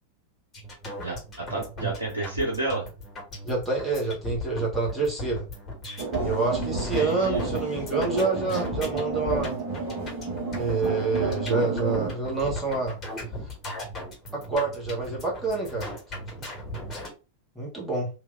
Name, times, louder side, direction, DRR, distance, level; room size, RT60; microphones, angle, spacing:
sound 1, 0.5-17.1, left 1 dB, 20° left, 1.7 m, -37 dB
voice 1, 1.0-2.9 6.8-7.4, right 2 dB, 75° right, 0.8 m, -30 dB
voice 2, 3.4-5.4 6.2-9.6 10.5-13.0 13.4-13.5 14.3-15.9 17.5-18.1, right 3 dB, 5° right, 1.4 m, -27 dB
sound 2, 6.0-12.1, right 4 dB, 50° right, 1.1 m, -31 dB
3.2 x 2.8 x 2.5 m
figure-of-eight pair, 90°, 0 cm